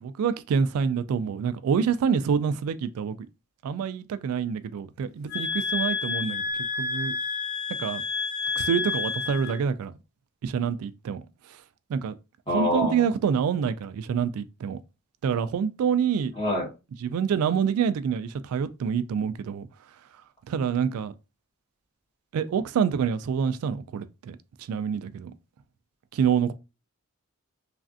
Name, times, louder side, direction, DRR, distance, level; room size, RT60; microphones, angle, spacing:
voice 1, 0.0-3.2 3.6-6.4 6.8-7.1 7.8-8.0 8.6-9.9 10.4-11.2 11.9-12.2 12.5-14.8 15.2-16.3 17.0-19.7 20.5-21.1 22.3-25.3 26.1-26.5, right 7 dB, 85° right, 0.3 m, -26 dB
sound 1, 5.3-9.6, left 5 dB, 70° left, 1.0 m, -29 dB
voice 2, 12.5-13.0 16.4-16.7, left 1 dB, 25° left, 1.2 m, -25 dB
3.2 x 2.5 x 2.5 m
head